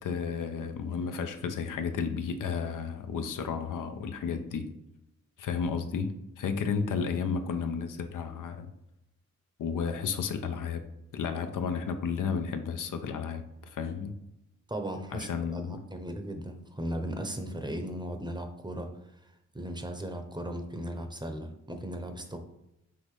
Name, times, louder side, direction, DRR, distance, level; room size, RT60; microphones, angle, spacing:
voice 1, 0.0-4.7 5.4-8.7 9.6-10.8 11.1-14.1 15.1-15.8, left 6 dB, 75° left, 7 dB, 0.6 m, -32 dB
voice 2, 14.7-22.4, right 1 dB, 15° right, 5 dB, 0.7 m, -37 dB
5.8 x 2.6 x 3.2 m, 0.87 s
cardioid pair, 55°, 32 cm